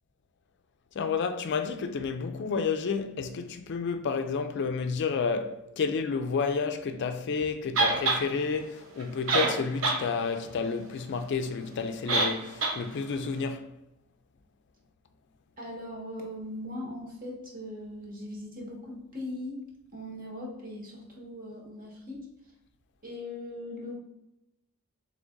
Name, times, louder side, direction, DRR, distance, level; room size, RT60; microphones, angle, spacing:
voice 1, 1.0-13.6, left 5 dB, 55° left, 0.4 m, -30 dB
sound 1, 7.8-8.2 9.0-9.1 9.3-10.0 10.4-10.5 12.1-12.3 12.6-12.8, right 3 dB, 65° right, 0.8 m, -24 dB
voice 2, 15.6-19.6 19.9-22.3 23.0-23.9, left 1 dB, 40° right, 1.2 m, -39 dB
3.9 x 3.3 x 3.6 m
head